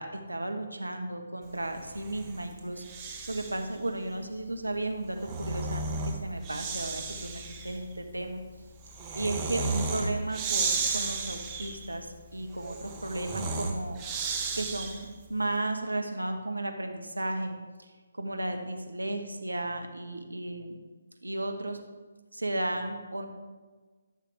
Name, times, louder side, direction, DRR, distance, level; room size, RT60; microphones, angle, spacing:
voice 1, 0.0-8.4 9.1-14.2 14.5-17.9 18.1-20.8 21.2-21.8 22.3-23.3, right 2 dB, 85° right, 5 dB, 1.3 m, -34 dB
Breathing, 1.7-3.7 4.9-15.2, right 4 dB, 20° right, 1.1 m, -34 dB
13.5 x 6.8 x 3.4 m, 1.4 s
figure-of-eight pair, 145°, 0 cm